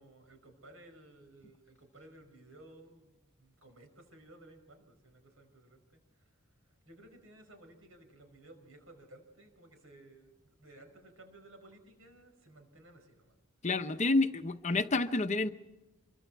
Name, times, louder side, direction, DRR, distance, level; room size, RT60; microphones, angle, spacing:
voice 1, 0.0-6.4 6.6-13.4, right 1 dB, 75° right, 6 dB, 5.3 m, -57 dB
voice 2, 13.6-15.5, left 2 dB, 30° left, 9 dB, 0.7 m, -29 dB
26.0 x 23.5 x 4.6 m, 1.0 s
head